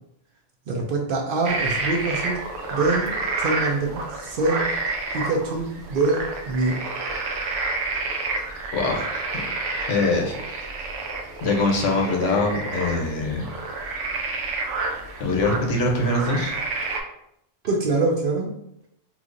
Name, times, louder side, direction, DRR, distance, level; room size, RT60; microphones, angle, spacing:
voice 1, 0.7-2.4 2.7-4.7 5.1-6.8 17.6-18.5, right 3 dB, 60° right, 1 dB, 0.7 m, -24 dB
sound 1, 1.4-17.0, right 3 dB, 85° right, 1.0 m, -29 dB
voice 2, 8.7-9.4 9.9-10.4 11.4-13.5 15.2-16.5, left 2 dB, 85° left, 1 dB, 1.0 m, -23 dB
3.0 x 2.4 x 3.7 m, 0.76 s
omnidirectional pair, 1.2 m